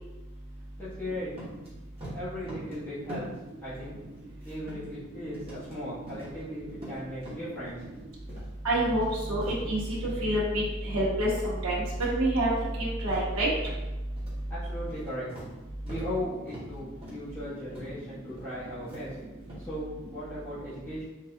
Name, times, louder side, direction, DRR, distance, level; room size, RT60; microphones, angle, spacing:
voice 1, 0.8-1.3 2.1-3.3 3.6-3.9 4.4-7.8 14.5-15.3 15.8-19.1 19.7-19.8 20.1-21.0, equal, 10° left, -15 dB, 1.2 m, -37 dB
sound 1, 1.3-1.7 2.0-2.8 3.1-3.5 3.7-5.0 5.3-5.7 6.1-6.4 6.7-8.0 8.3-8.5 8.8-10.2 10.5-10.8 11.2-11.5 11.9-12.8 13.1-13.8 14.2-14.4 14.8-16.1 16.5-16.7 17.0-17.3 17.7-17.9 18.2-18.5 18.9-19.7, equal, 25° right, 1.3 m, -44 dB
voice 2, 8.6-12.5 12.8-13.5, right 1 dB, 75° right, -6 dB, 1.0 m, -27 dB
3.9 x 3.5 x 2.6 m, 1.1 s
head